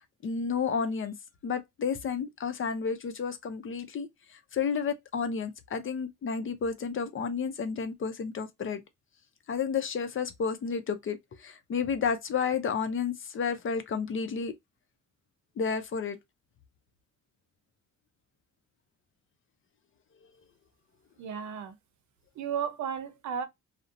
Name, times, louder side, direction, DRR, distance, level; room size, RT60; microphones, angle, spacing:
voice 1, 0.2-1.1 1.4-8.8 9.5-14.5 15.6-16.2, left 6 dB, 45° left, 0.6 m, -31 dB
voice 2, 21.2-21.7 22.3-23.5, right 7 dB, 70° right, 0.7 m, -34 dB
2.6 x 2.1 x 2.4 m
cardioid pair, 90°, 30 cm